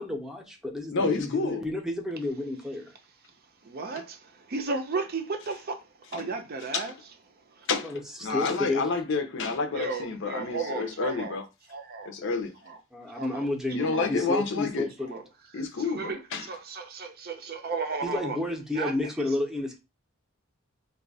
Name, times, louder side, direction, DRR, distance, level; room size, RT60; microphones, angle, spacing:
voice 1, 0.0-2.9 7.8-8.9 12.9-15.2 18.0-19.8, left 2 dB, ahead, 0.6 m, -31 dB
voice 2, 0.9-1.6 6.7-6.9 7.7-7.9 8.2-11.4 12.2-12.5 13.7-14.9 15.5-16.5, left 4 dB, 60° left, 0.6 m, -29 dB
voice 3, 3.6-5.8 6.1-6.9 7.5-7.7 8.3-8.4 9.7-11.4 11.7-12.1 12.6-12.8 13.1-13.5 13.9-14.1 15.1-15.2 15.8-18.4 18.7-18.9, right 4 dB, 45° right, 0.5 m, -34 dB
2.6 x 2.3 x 4.0 m
head